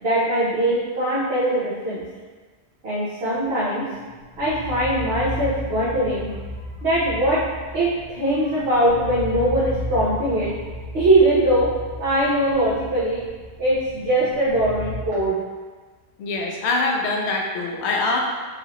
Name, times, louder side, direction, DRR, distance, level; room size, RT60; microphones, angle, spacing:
voice 1, 0.0-2.0 2.8-3.8 4.4-6.3 6.8-7.4 7.7-10.5 10.9-11.7 12.0-13.2 13.6-15.4, right 1 dB, 65° right, -10 dB, 1.1 m, -21 dB
sound 1, 3.9-15.0, left 1 dB, 50° left, 1.0 m, -34 dB
voice 2, 16.2-18.2, left 3 dB, 75° left, 0 dB, 0.8 m, -24 dB
4.7 x 2.7 x 3.0 m, 1.4 s
omnidirectional pair, 1.1 m